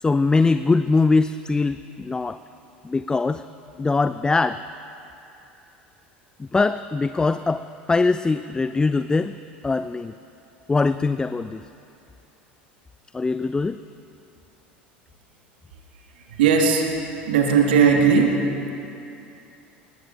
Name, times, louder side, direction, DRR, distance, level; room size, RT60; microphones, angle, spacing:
voice 1, 0.0-2.4 2.8-3.4 3.8-4.6 6.4-9.3 9.6-10.1 10.7-11.6 13.1-13.8, left 3 dB, 15° left, 12 dB, 0.4 m, -22 dB
voice 2, 16.2-16.9 17.2-18.5, right 6 dB, 70° right, 1 dB, 1.8 m, -18 dB
23.5 x 20.0 x 2.6 m, 2.7 s
figure-of-eight pair, 75°, 6 cm